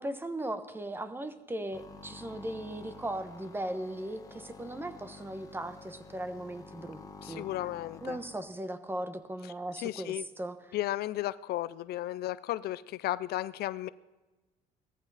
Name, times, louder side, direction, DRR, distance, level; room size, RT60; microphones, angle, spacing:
voice 1, 0.0-7.5 8.0-10.8, right 1 dB, 15° right, 11 dB, 1.1 m, -38 dB
sound 1, 1.7-8.4, left 3 dB, 20° left, 1.6 m, -50 dB
voice 2, 7.2-8.2 9.8-10.2 10.7-13.9, left 15 dB, 70° left, 17 dB, 0.5 m, -34 dB
17.0 x 14.0 x 4.1 m, 1.2 s
cardioid pair, 110°, 17 cm